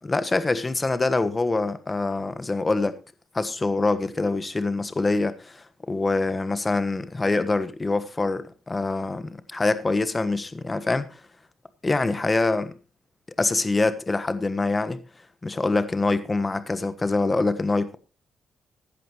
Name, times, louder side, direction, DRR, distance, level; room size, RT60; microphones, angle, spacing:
voice 1, 0.0-3.0 3.3-11.2 11.8-12.7 13.4-15.0 15.4-18.0, left 3 dB, 20° left, 1.3 m, -25 dB
15.0 x 11.0 x 3.1 m
cardioid pair, 105°, 0 cm